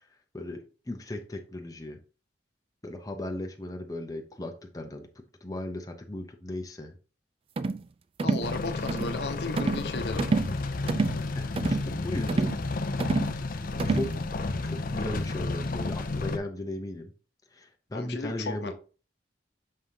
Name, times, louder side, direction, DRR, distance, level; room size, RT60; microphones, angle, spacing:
voice 1, 0.3-2.0 2.8-5.1 5.4-6.9 11.3-12.6 13.3-14.1 14.6-17.1 17.5-18.7, left 1 dB, 20° left, 3 dB, 0.8 m, -37 dB
sound 1, 7.6-7.8 8.2-8.5 8.9-9.1 9.6-9.9 10.2-10.5 10.9-11.2 11.6-11.9 12.3-12.6 13.0-13.3 13.8-14.1, right 3 dB, 35° right, 0.3 m, -27 dB
voice 2, 8.2-10.3 17.9-18.7, left 2 dB, 70° left, 7 dB, 1.0 m, -35 dB
sound 2, 8.4-16.4, left 3 dB, 50° left, 0.6 m, -31 dB
6.5 x 5.5 x 2.8 m, 0.35 s
head